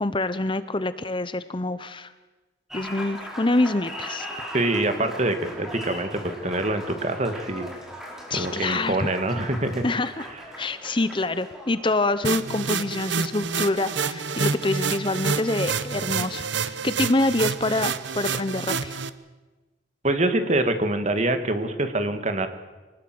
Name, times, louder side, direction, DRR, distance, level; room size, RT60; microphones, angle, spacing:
voice 1, 0.0-2.1 2.7-4.3 8.3-9.1 9.8-10.3 10.6-19.0, left 2 dB, 25° left, 13 dB, 0.8 m, -26 dB
Applause, 2.7-14.5, equal, 5° right, 4.7 m, -39 dB
voice 2, 4.5-7.7 8.3-9.8 20.0-22.5, right 2 dB, 35° right, 8 dB, 2.1 m, -25 dB
sound 1, 12.2-19.1, right 5 dB, 75° right, 1.0 m, -28 dB
25.0 x 19.5 x 7.8 m, 1.2 s
head